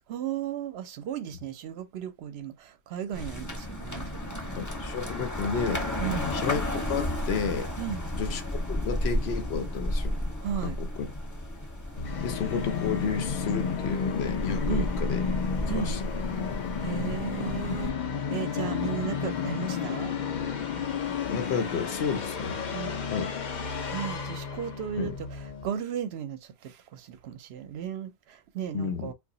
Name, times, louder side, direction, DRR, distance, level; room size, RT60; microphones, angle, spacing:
voice 1, 0.1-4.6 6.0-6.4 7.8-8.1 10.4-10.8 14.7-14.9 15.7-16.0 16.8-17.9 18.3-20.1 22.7-23.0 23.9-29.1, right 9 dB, 75° right, 0.8 m, -35 dB
sound 1, 3.1-17.9, left 1 dB, 20° left, 0.7 m, -33 dB
voice 2, 4.6-5.8 6.3-7.7 8.1-8.4 8.7-10.2 10.6-11.1 12.2-15.2 15.6-16.0 21.3-22.6 23.1-23.3 25.0-25.2 28.7-29.1, left 6 dB, 75° left, 0.9 m, -31 dB
Musical instrument, 12.0-25.7, left 6 dB, 50° left, 0.6 m, -32 dB
2.7 x 2.4 x 3.8 m
omnidirectional pair, 1.1 m